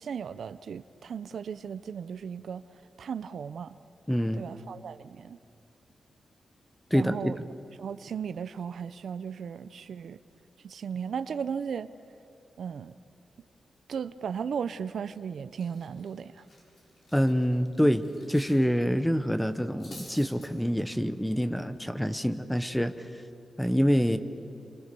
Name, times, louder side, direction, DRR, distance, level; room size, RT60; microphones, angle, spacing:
voice 1, 0.0-2.6 3.0-3.8 4.3-5.4 6.9-7.4 7.8-10.2 10.6-11.9 12.6-12.9 13.9-16.4, right 7 dB, 70° right, 14 dB, 0.6 m, -36 dB
voice 2, 4.1-4.4 6.9-7.3 17.1-22.9 23.6-24.2, equal, 5° left, 10 dB, 0.9 m, -26 dB
Cutlery silverware, 14.9-15.2 15.5-18.6 18.9-19.1 19.5-20.5, left 1 dB, 50° left, 6.4 m, -51 dB
29.0 x 25.0 x 6.9 m, 2.6 s
wide cardioid pair, 140°, 0 cm